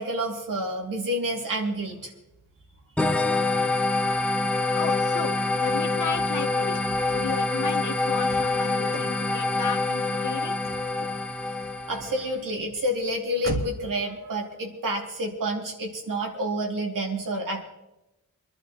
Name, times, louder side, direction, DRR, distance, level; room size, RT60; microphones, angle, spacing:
voice 1, 0.0-2.1 11.9-17.6, equal, 80° right, 0 dB, 2.9 m, -29 dB
sound 1, 3.0-12.3, left 2 dB, 5° left, 0.9 m, -26 dB
voice 2, 4.7-6.8 7.1-10.6, left 7 dB, 65° left, 8 dB, 1.1 m, -34 dB
Car / Slam, 5.6-14.0, right 2 dB, 40° right, 1.9 m, -41 dB
26.0 x 11.5 x 3.2 m, 0.95 s
wide cardioid pair, 110°, 32 cm